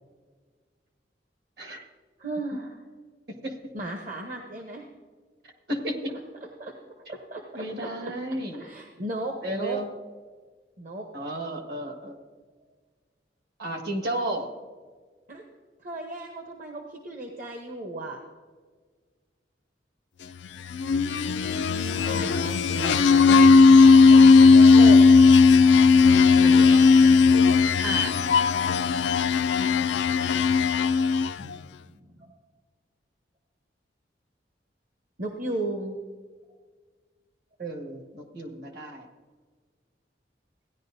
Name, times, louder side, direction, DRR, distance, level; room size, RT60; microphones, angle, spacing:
voice 1, 2.2-2.8 3.7-4.9 6.6-7.9 8.5-9.8 10.8-11.1 15.3-15.4 15.8-18.2 21.2-22.3 24.5-25.0 31.4-32.4 35.2-36.0, right 1 dB, 50° right, 2 dB, 0.9 m, -36 dB
voice 2, 5.7-6.1 7.5-8.6 9.4-9.9 11.1-12.2 13.6-14.5 22.0-23.5 26.4-27.1 27.8-28.3 37.6-39.1, right 1 dB, 65° right, 3 dB, 1.6 m, -33 dB
sound 1, 20.6-31.5, left 4 dB, 80° left, 0.3 m, -17 dB
16.0 x 10.5 x 2.6 m, 1.5 s
head